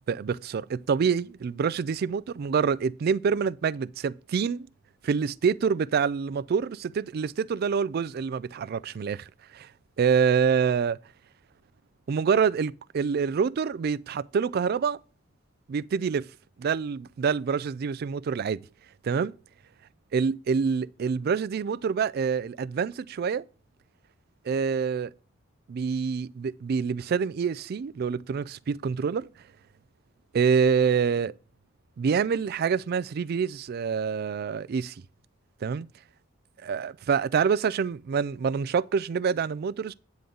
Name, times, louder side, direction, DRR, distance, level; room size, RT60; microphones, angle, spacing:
voice 1, 0.1-4.7 5.0-9.3 9.5-9.7 10.0-11.0 12.1-15.0 15.7-16.3 16.6-18.6 19.0-19.3 20.1-23.4 24.5-25.1 25.7-29.3 30.3-31.3 32.0-34.9 35.6-35.9 36.6-39.9, right 6 dB, 50° right, 0.3 m, -26 dB
9.3 x 3.8 x 6.8 m
head